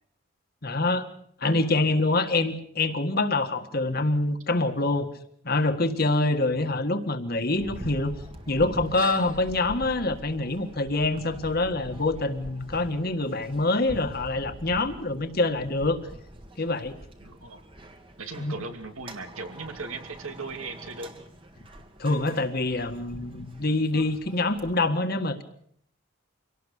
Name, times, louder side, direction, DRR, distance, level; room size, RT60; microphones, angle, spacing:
voice 1, 0.6-1.1 1.4-5.1 5.4-8.1 8.5-16.0 16.6-17.0 18.4-18.5 22.0-25.4, left 2 dB, 45° left, 8 dB, 1.7 m, -25 dB
sound 1, 7.5-24.7, right 1 dB, 25° right, 1.7 m, -44 dB
voice 2, 17.2-17.6 18.2-21.1, right 3 dB, 85° right, 6 dB, 2.6 m, -38 dB
25.0 x 18.0 x 6.6 m, 0.66 s
head